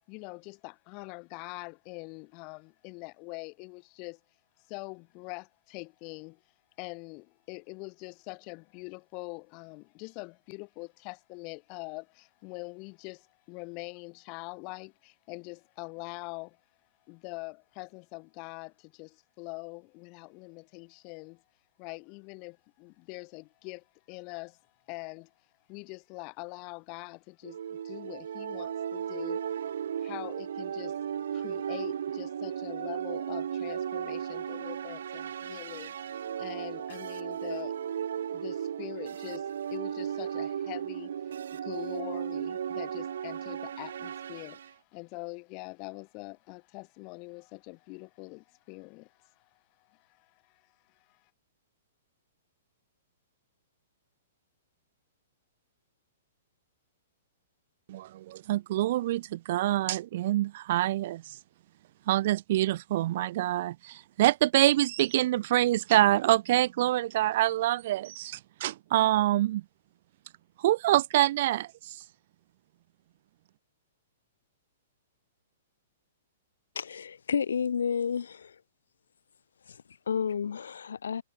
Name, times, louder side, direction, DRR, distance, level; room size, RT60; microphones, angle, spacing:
voice 1, 0.1-4.2 4.7-6.4 6.8-16.6 17.1-21.4 21.8-24.6 24.9-25.3 25.7-31.0 31.3-37.9 38.3-51.3, left 32 dB, 35° left, 6.8 m, -44 dB
sound 1, 27.4-44.7, right 9 dB, 75° right, 4.2 m, -35 dB
voice 2, 57.9-61.4 62.1-69.6 70.6-72.0, right 15 dB, 55° right, 1.0 m, -26 dB
voice 3, 76.7-78.5 79.7-81.2, left 7 dB, 85° left, 1.5 m, -31 dB
hypercardioid pair, 140°, 0 cm